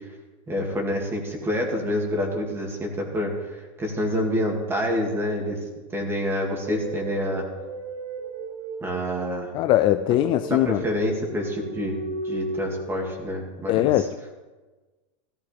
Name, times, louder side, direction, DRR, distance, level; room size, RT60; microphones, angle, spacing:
voice 1, 0.5-5.6 5.9-7.4 8.8-9.5 10.5-14.1, equal, 15° right, 1 dB, 2.4 m, -27 dB
sound 1, 6.5-13.2, right 2 dB, 55° right, 2.6 m, -35 dB
voice 2, 9.5-10.8 13.7-14.3, left 13 dB, 30° left, 9 dB, 0.3 m, -21 dB
15.5 x 14.5 x 3.5 m, 1.3 s
supercardioid pair, 155°, 17 cm